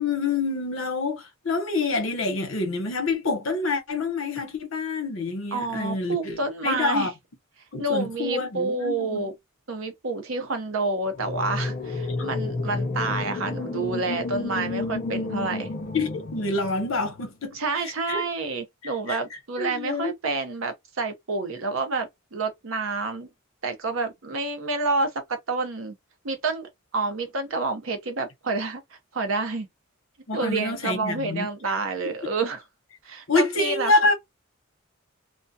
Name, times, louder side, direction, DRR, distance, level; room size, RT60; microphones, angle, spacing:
voice 1, 0.0-7.1 7.7-9.3 12.2-12.3 15.9-18.2 18.8-19.2 19.6-20.1 30.3-31.5 33.3-34.1, left 3 dB, 70° left, 0.8 m, -27 dB
voice 2, 5.5-7.1 7.8-9.3 9.7-15.7 17.5-23.3 23.6-25.9 26.2-28.8 29.1-29.7 30.3-32.6 33.1-33.9, right 3 dB, 70° right, 0.7 m, -28 dB
sound 1, 11.1-17.3, left 3 dB, 40° left, 0.4 m, -31 dB
2.3 x 2.2 x 2.6 m
head